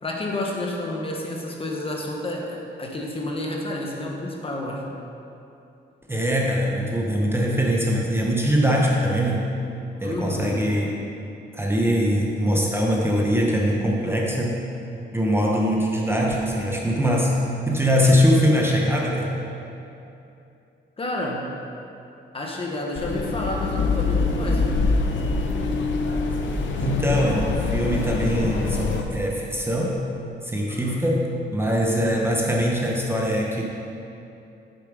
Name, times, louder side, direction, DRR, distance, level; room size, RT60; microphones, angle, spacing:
voice 1, 0.0-4.8 10.0-10.6 18.0-18.3 21.0-21.5 22.3-24.9 30.7-31.0, left 1 dB, 30° left, -1 dB, 1.1 m, -30 dB
voice 2, 6.1-9.5 10.0-11.0 11.5-14.6 15.1-19.3 26.8-30.0 30.4-33.6, equal, 10° right, -2 dB, 0.8 m, -22 dB
sound 1, 23.0-29.0, left 4 dB, 80° left, 0.8 m, -24 dB
7.7 x 6.9 x 4.9 m, 2.8 s
cardioid pair, 130°, 19 cm